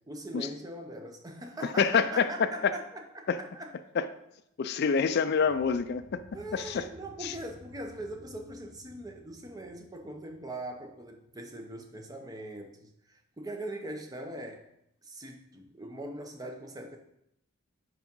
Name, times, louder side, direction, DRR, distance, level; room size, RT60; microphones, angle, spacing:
voice 1, 0.1-3.7 6.3-14.6 15.0-17.0, right 1 dB, 20° right, 4 dB, 0.6 m, -41 dB
voice 2, 1.8-2.3 2.6-2.7 3.3-3.4 4.0-4.1 4.6-6.2 6.5-6.8 7.2-7.3, left 6 dB, 50° left, 12 dB, 0.4 m, -26 dB
sound 1, 5.4-11.5, left 1 dB, 65° right, 1.9 m, -55 dB
4.9 x 4.7 x 5.3 m, 0.79 s
head